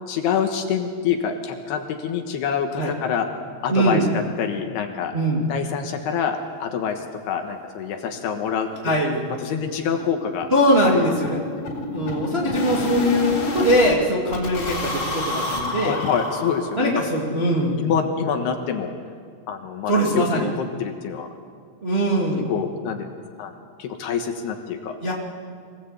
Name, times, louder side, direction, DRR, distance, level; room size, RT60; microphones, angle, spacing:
voice 1, 0.1-3.3 3.6-5.1 5.5-9.0 9.4-10.5 10.8-11.6 15.8-17.0 17.8-18.9 19.5-21.3 22.4-23.5 23.8-25.0, left 7 dB, 70° left, 5 dB, 3.0 m, -26 dB
voice 2, 3.7-4.1 5.1-5.4 8.8-9.2 10.5-11.4 11.9-15.9 16.8-17.8 19.9-20.5 21.8-22.5 25.0-25.1, equal, 20° right, -3 dB, 1.5 m, -21 dB
sound 1, 7.1-7.2 7.5-7.6 7.9-8.0 8.3-8.5 8.7-13.9 14.3-17.1, left 1 dB, 35° left, 3.8 m, -30 dB
25.5 x 17.5 x 8.2 m, 2.1 s
omnidirectional pair, 5.3 m